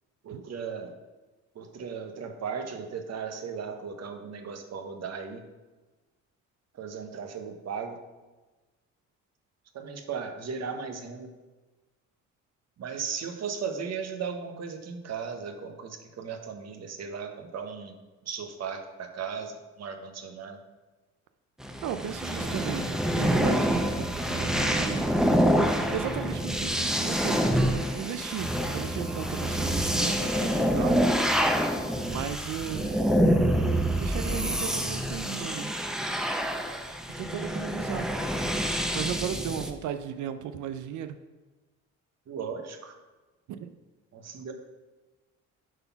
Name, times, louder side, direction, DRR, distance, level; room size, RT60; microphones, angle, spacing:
voice 1, 0.2-1.0 1.5-5.4 6.7-8.0 9.7-11.3 12.8-20.6 22.0-22.7 42.3-43.0 44.1-44.5, right 6 dB, 60° right, 6 dB, 1.1 m, -37 dB
sound 1, 21.6-39.7, equal, ahead, 0.7 m, -27 dB
voice 2, 21.8-22.9 23.1-25.1 25.9-27.4 27.9-30.9 32.0-33.1 34.0-35.7 37.2-38.1 38.9-41.2 43.5-43.7, right 9 dB, 75° right, 9 dB, 0.5 m, -35 dB
7.9 x 4.0 x 5.8 m, 1.2 s
cardioid pair, 90°, 30 cm